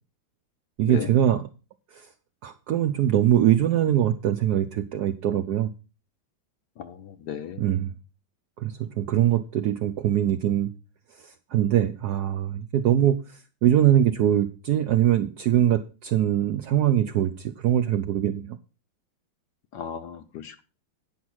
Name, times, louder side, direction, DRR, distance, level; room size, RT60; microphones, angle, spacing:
voice 1, 0.8-1.5 2.4-5.7 7.6-7.9 8.6-10.7 11.5-13.2 13.6-18.6, right 11 dB, 70° right, 9 dB, 0.9 m, -22 dB
voice 2, 6.8-7.7 19.7-20.6, left 8 dB, 65° left, 10 dB, 1.2 m, -36 dB
9.4 x 5.9 x 6.2 m, 0.33 s
omnidirectional pair, 2.2 m